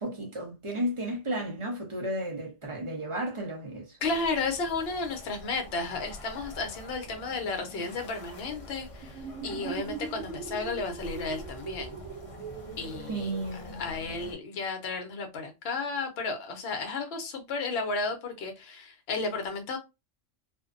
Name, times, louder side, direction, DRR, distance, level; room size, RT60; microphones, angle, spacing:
voice 1, 0.0-4.0 13.1-13.8, right 1 dB, 35° right, 0.6 m, -33 dB
voice 2, 4.0-12.0 12.8-13.3 13.7-19.8, left 3 dB, 60° left, 0.9 m, -33 dB
sound 1, 4.0-14.3, left 1 dB, 35° left, 0.6 m, -46 dB
sound 2, 9.0-14.4, right 6 dB, 80° right, 1.0 m, -41 dB
2.6 x 2.2 x 2.4 m
omnidirectional pair, 1.3 m